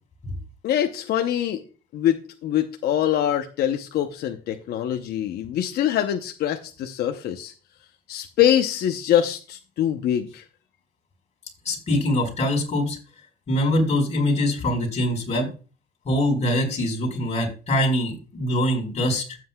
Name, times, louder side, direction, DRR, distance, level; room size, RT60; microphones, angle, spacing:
voice 1, 0.6-1.6 1.9-7.5 8.1-10.4, left 10 dB, 70° left, 6 dB, 0.8 m, -24 dB
voice 2, 11.6-13.0 13.5-15.5 16.0-19.4, left 1 dB, 40° left, -1 dB, 4.7 m, -23 dB
15.0 x 7.7 x 2.3 m, 0.36 s
cardioid pair, 110°, 17 cm